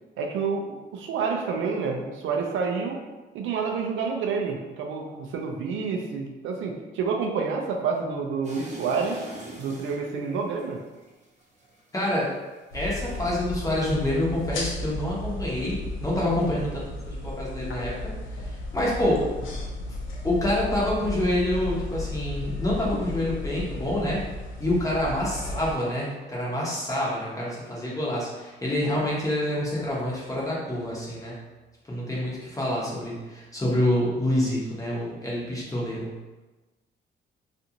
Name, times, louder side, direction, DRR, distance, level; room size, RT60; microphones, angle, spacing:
voice 1, 0.2-3.0 3.3-9.2 9.6-10.8, right 5 dB, 80° right, 2 dB, 0.5 m, -28 dB
sound 1, 8.4-12.6 12.9-13.5, right 2 dB, 35° right, 0.7 m, -43 dB
voice 2, 11.9-12.3 12.7-18.0 18.4-19.3 20.2-24.2 24.6-31.4 31.8-36.1, left 1 dB, 15° left, -6 dB, 0.9 m, -27 dB
sound 2, 12.7-25.7, left 2 dB, 85° left, 0.5 m, -34 dB
2.5 x 2.5 x 2.8 m, 1.2 s
cardioid pair, 90°, 20 cm